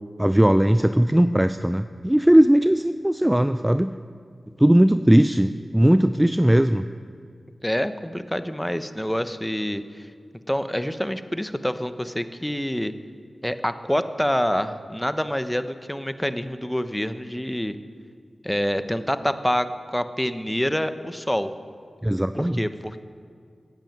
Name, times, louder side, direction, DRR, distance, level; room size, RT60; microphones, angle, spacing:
voice 1, 0.2-3.9 4.6-6.9 22.0-22.6, right 1 dB, 10° right, 11 dB, 0.4 m, -18 dB
voice 2, 7.6-9.8 10.5-12.9 13.4-17.8 18.4-21.5 22.3-23.0, equal, 10° left, 11 dB, 0.9 m, -26 dB
14.5 x 9.1 x 9.0 m, 2.2 s
cardioid pair, 40°, 0 cm